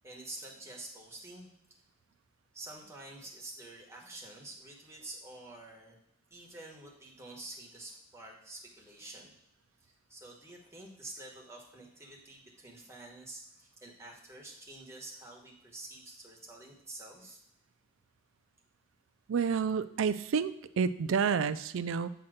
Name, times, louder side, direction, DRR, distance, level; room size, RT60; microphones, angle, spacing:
voice 1, 0.0-1.5 2.5-6.0 6.3-9.3 9.8-17.4, right 2 dB, 15° right, -1 dB, 1.2 m, -48 dB
voice 2, 19.3-22.1, right 6 dB, 70° right, 13 dB, 0.4 m, -29 dB
8.7 x 2.9 x 6.3 m, 0.82 s
head